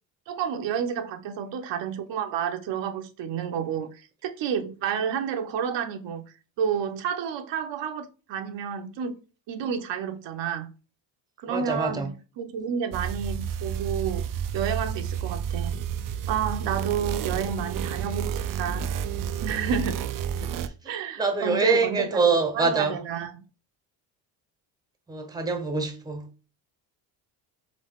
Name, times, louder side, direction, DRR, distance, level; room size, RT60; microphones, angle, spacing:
voice 1, 0.3-6.2 6.6-9.2 9.5-10.7 11.4-14.2 14.5-15.8 16.3-18.9 19.4-20.0 20.9-23.3, right 7 dB, 65° right, 0.9 m, -30 dB
voice 2, 11.5-12.1 21.2-23.0 25.1-26.3, right 4 dB, 10° right, 0.9 m, -25 dB
sound 1, 12.9-20.7, right 8 dB, 45° right, 0.5 m, -30 dB
4.0 x 3.5 x 3.6 m
supercardioid pair, 85°, 46 cm